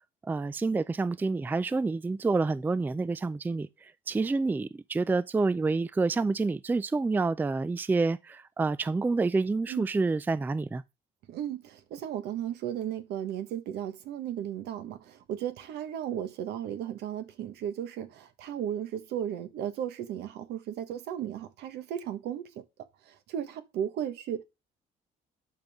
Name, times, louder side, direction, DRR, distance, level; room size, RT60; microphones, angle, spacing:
voice 1, 0.3-10.8, right 3 dB, 10° right, 0.3 m, -28 dB
voice 2, 11.3-22.6 23.1-24.4, right 10 dB, 80° right, 1.4 m, -35 dB
11.5 x 5.3 x 3.6 m
cardioid pair, 110°, 17 cm